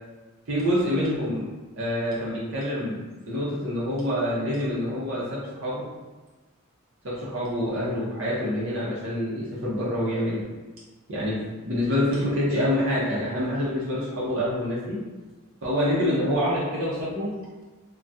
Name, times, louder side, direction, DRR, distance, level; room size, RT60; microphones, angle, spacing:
voice 1, 0.5-1.5 1.8-5.9 7.0-10.4 11.1-15.0 15.6-17.3, equal, 75° right, -7 dB, 0.7 m, -26 dB
2.6 x 2.3 x 3.3 m, 1.2 s
head